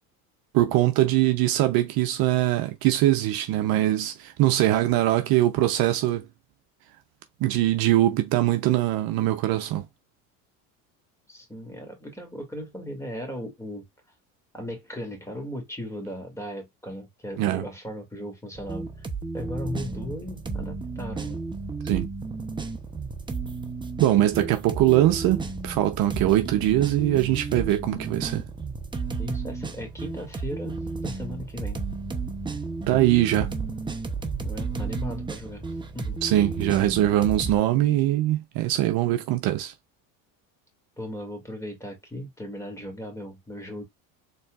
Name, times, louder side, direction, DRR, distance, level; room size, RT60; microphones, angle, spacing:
voice 1, 0.5-6.3 7.4-9.8 17.4-17.6 21.8-22.1 24.0-28.4 32.9-33.5 36.2-39.7, right 14 dB, 60° right, 0.7 m, -22 dB
voice 2, 11.3-13.8 14.5-18.9 19.3-21.4 29.2-31.8 34.4-35.7 35.9-36.2 41.0-43.8, equal, 5° left, 2.1 m, -37 dB
sound 1, 18.6-37.6, right 4 dB, 10° right, 0.7 m, -33 dB
4.3 x 3.1 x 2.4 m
supercardioid pair, 100°, 41 cm